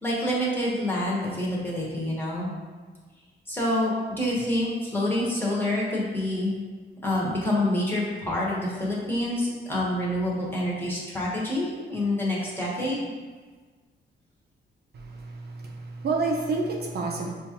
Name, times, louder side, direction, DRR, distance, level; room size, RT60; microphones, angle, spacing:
voice 1, 0.0-2.5 3.5-6.6 7.0-13.0, left 1 dB, 10° left, -6 dB, 1.0 m, -27 dB
voice 2, 14.9-17.3, right 3 dB, 55° right, 0 dB, 0.5 m, -29 dB
5.2 x 2.4 x 2.9 m, 1.4 s
cardioid pair, 110°, 20 cm